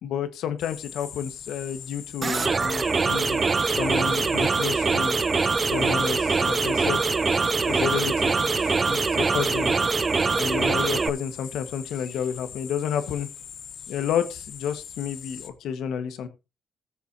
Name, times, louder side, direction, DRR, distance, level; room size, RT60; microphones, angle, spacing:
voice 1, 0.0-5.2 5.6-9.7 10.3-13.3 13.9-16.3, left 8 dB, 80° left, 10 dB, 1.4 m, -31 dB
sound 1, 0.6-15.5, left 8 dB, 65° left, 1.1 m, -42 dB
sound 2, 2.2-11.1, right 4 dB, 35° right, 0.5 m, -23 dB
18.5 x 6.9 x 2.8 m, 0.28 s
cardioid pair, 90°, 0 cm